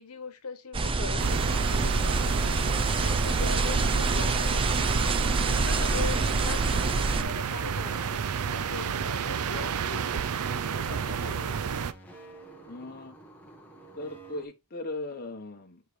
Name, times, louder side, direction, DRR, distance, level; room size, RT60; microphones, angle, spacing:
voice 1, 0.0-5.2 5.6-10.3 10.7-11.8, left 4 dB, 80° left, 1.2 m, -41 dB
sound 1, 0.7-7.2, right 3 dB, 25° right, 0.5 m, -27 dB
sound 2, 1.2-11.9, right 7 dB, 75° right, 0.5 m, -31 dB
sound 3, 2.3-14.5, right 1 dB, 5° left, 1.4 m, -49 dB
voice 2, 12.7-13.2 13.9-15.8, left 2 dB, 45° left, 1.0 m, -38 dB
7.3 x 4.8 x 3.2 m
head